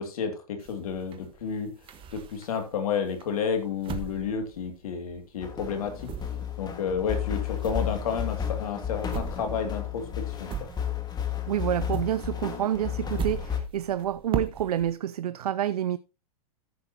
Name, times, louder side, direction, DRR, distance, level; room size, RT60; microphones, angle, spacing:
voice 1, 0.0-1.7 2.1-6.0 6.6-10.5, left 6 dB, 70° left, 2.5 m, -31 dB
sound 1, 0.6-2.7 3.2-5.3 5.6-11.3 11.5-14.9, right 7 dB, 25° right, 1.3 m, -39 dB
sound 2, 5.4-13.6, left 9 dB, 20° left, 1.8 m, -33 dB
voice 2, 11.5-16.0, right 11 dB, 85° right, 0.5 m, -28 dB
14.0 x 6.7 x 2.9 m
hypercardioid pair, 115°, 19 cm